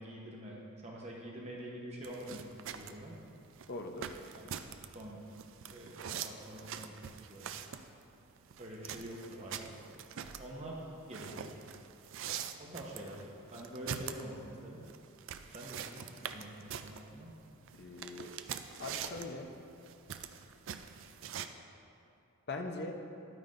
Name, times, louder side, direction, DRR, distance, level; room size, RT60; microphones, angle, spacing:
voice 1, 0.0-3.2 4.3-4.5 4.9-5.2 5.7-7.5 8.6-9.7 10.4-11.6 12.6-13.3 13.5-14.8 15.5-17.3, right 1 dB, 30° right, -3 dB, 1.0 m, -46 dB
sound 1, 2.0-21.5, right 8 dB, 55° right, 0.3 m, -44 dB
voice 2, 3.7-4.1 17.8-18.3 18.8-19.5 22.5-22.9, left 2 dB, 45° left, 4 dB, 0.6 m, -41 dB
10.5 x 9.2 x 2.6 m, 2.6 s
head